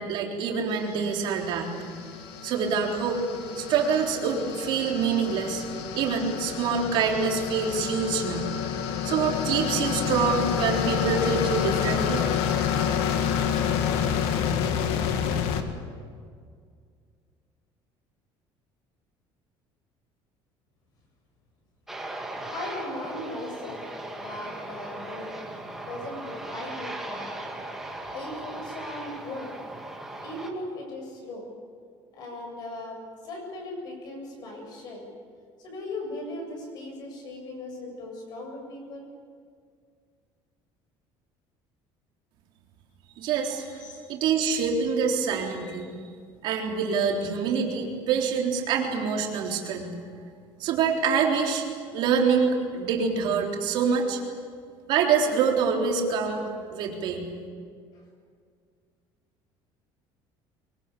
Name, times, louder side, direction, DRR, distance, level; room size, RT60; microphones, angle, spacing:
voice 1, 0.0-1.7 2.4-3.2 3.6-5.6 5.9-8.5 9.0-12.2 43.2-43.6 44.1-45.9 46.4-49.9 50.6-51.7 51.9-54.2 54.9-57.3, right 6 dB, 55° right, 0 dB, 3.8 m, -25 dB
sound 1, 0.9-15.6, left 8 dB, 70° left, 2.1 m, -28 dB
Aircraft, 21.9-30.5, right 1 dB, 5° right, 2.3 m, -38 dB
voice 2, 22.5-23.8 24.2-25.3 25.8-27.6 28.1-29.5 30.2-31.4 32.1-35.0 35.6-39.1 43.7-44.1, left 1 dB, 45° left, 2 dB, 7.4 m, -38 dB
24.0 x 23.0 x 8.5 m, 2.1 s
cardioid pair, 180°, 10 cm